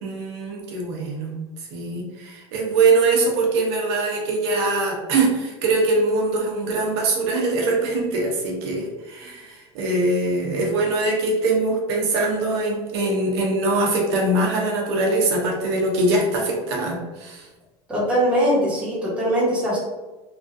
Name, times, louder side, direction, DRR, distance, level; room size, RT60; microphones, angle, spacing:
voice 1, 0.0-1.4 1.7-17.5, right 2 dB, 90° right, -1 dB, 0.7 m, -22 dB
voice 2, 17.9-19.8, equal, 10° right, -7 dB, 1.1 m, -21 dB
3.1 x 2.4 x 2.5 m, 1.2 s
cardioid pair, 150°, 13 cm